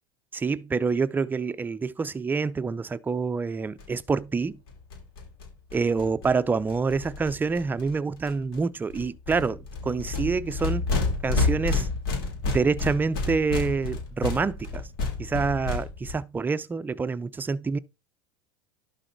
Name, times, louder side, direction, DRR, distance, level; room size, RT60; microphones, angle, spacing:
voice 1, 0.3-4.6 5.7-10.9 11.2-11.9 12.5-14.9 15.2-17.8, right 4 dB, 15° right, 0.5 m, -27 dB
sound 1, 3.8-3.9 4.1-4.2 4.4-4.5 4.7-7.9 8.2-8.6 8.9-16.1, left 3 dB, 75° left, 3.2 m, -30 dB
11.5 x 4.0 x 4.0 m
hypercardioid pair, 90°, 13 cm